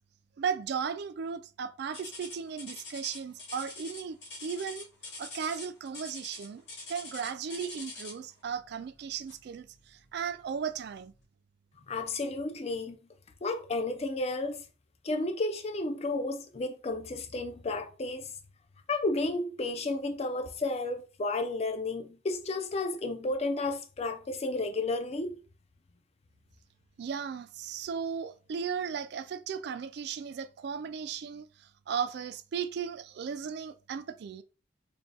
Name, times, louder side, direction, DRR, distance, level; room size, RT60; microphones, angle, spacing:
voice 1, 0.4-4.9 5.2-6.6 6.9-11.1 27.0-34.4, right 6 dB, 55° right, 0.3 m, -36 dB
sound 1, 1.9-8.3 9.3-9.5 10.1-10.2 10.9-11.0, left 3 dB, 60° left, 1.7 m, -44 dB
voice 2, 11.9-13.0 13.4-14.6 15.0-18.3 18.9-25.4, left 2 dB, 35° left, 0.4 m, -32 dB
3.5 x 2.2 x 3.9 m
head